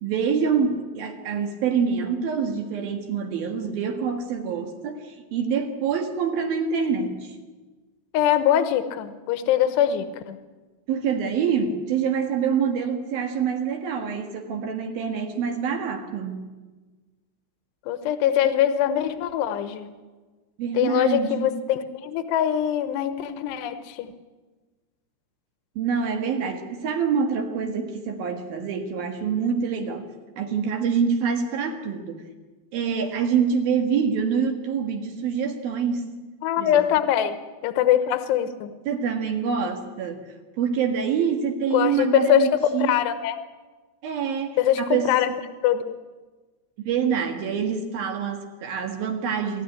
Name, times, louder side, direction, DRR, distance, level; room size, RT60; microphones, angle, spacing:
voice 1, 0.0-7.4 10.9-16.5 20.6-21.6 25.8-30.1 30.4-32.3 32.7-36.1 36.6-36.8 38.9-43.0 44.0-45.2 46.8-49.6, right 6 dB, 65° right, 5 dB, 3.1 m, -26 dB
voice 2, 8.1-10.4 17.9-19.9 20.7-24.1 36.4-37.4 37.6-38.7 41.7-43.4 44.6-45.3 45.6-45.9, left 10 dB, 75° left, 10 dB, 3.2 m, -22 dB
25.0 x 14.0 x 9.9 m, 1.3 s
omnidirectional pair, 5.1 m